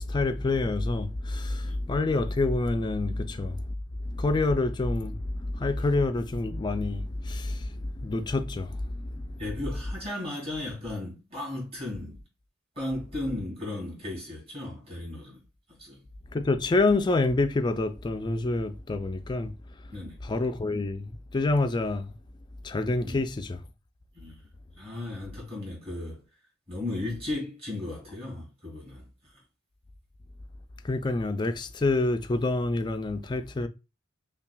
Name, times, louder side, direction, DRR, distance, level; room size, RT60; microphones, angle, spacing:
voice 1, 0.0-3.6 4.1-9.1 16.3-19.5 20.2-22.1 22.6-23.6 30.8-33.7, left 2 dB, 20° left, 0.3 m, -27 dB
voice 2, 9.4-12.2 12.8-15.4 15.8-16.0 19.9-20.2 23.0-23.2 24.1-24.4 24.8-26.2 26.7-29.3, left 1 dB, 30° right, 2.3 m, -35 dB
5.6 x 2.3 x 2.3 m
head